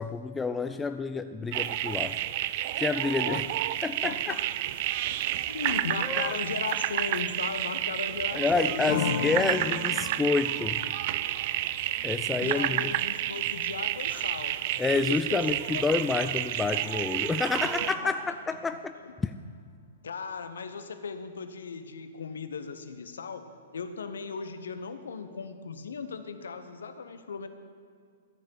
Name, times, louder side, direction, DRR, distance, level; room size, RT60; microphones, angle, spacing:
voice 1, 0.0-2.3 2.8-3.4 3.8-4.4 6.0-6.4 8.3-10.9 12.0-12.9 14.8-18.9 19.2-19.3, left 4 dB, 10° left, 9 dB, 0.4 m, -29 dB
sound 1, 1.5-18.0, right 14 dB, 45° right, 0.4 m, -30 dB
voice 2, 4.0-4.4 5.1-5.2 5.5-8.9 12.4-16.0 17.8-18.3 19.0-19.1 20.0-27.5, left 5 dB, 70° left, 9 dB, 1.1 m, -37 dB
sound 2, 8.9-14.4, left 7 dB, 55° left, 0.7 m, -37 dB
14.0 x 6.6 x 8.4 m, 2.2 s
figure-of-eight pair, 110°, 0 cm